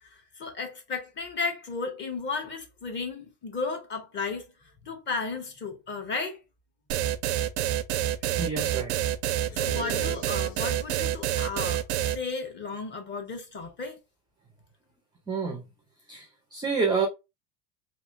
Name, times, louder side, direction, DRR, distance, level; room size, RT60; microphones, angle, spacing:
voice 1, 0.0-4.4 4.8-6.4 9.5-14.0, left 4 dB, 25° left, 0.7 m, -34 dB
sound 1, 6.9-12.2, right 12 dB, 90° right, 0.5 m, -27 dB
voice 2, 8.4-9.0 15.3-15.7 16.1-17.1, right 5 dB, 10° right, 0.3 m, -28 dB
sound 2, 9.4-11.0, left 5 dB, 55° left, 1.6 m, -43 dB
3.0 x 2.5 x 2.4 m
supercardioid pair, 130°, 45 cm